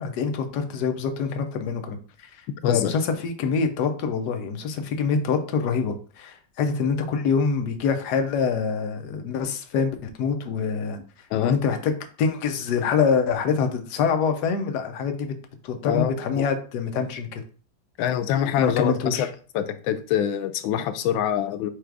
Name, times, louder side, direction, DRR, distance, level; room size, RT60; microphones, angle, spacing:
voice 1, 0.0-2.4 2.7-11.0 11.4-11.9 12.2-15.3 15.6-17.4 18.6-19.3, left 6 dB, 70° left, 5 dB, 1.1 m, -25 dB
voice 2, 2.6-2.9 11.3-11.6 15.8-16.1 16.4-16.5 18.0-19.3 19.5-21.7, left 10 dB, 85° left, 9 dB, 1.3 m, -25 dB
4.7 x 2.3 x 4.6 m, 0.40 s
omnidirectional pair, 2.1 m